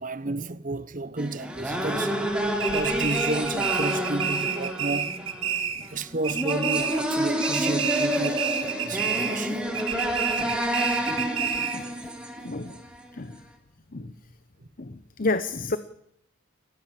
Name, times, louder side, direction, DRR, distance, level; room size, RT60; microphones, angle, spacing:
voice 1, 0.0-2.2 2.7-5.2 5.9-9.6 10.1-10.2 11.3-11.7 12.4-12.5 14.0-14.1, right 2 dB, 40° right, 1.0 m, -32 dB
sound 1, 1.2-13.0, equal, 5° right, 3.2 m, -29 dB
sound 2, 2.6-6.0 6.2-7.1 7.4-9.5 9.7-11.9, right 8 dB, 75° right, 2.0 m, -29 dB
voice 2, 15.2-15.8, left 3 dB, 45° left, 0.9 m, -28 dB
28.5 x 15.0 x 7.6 m
head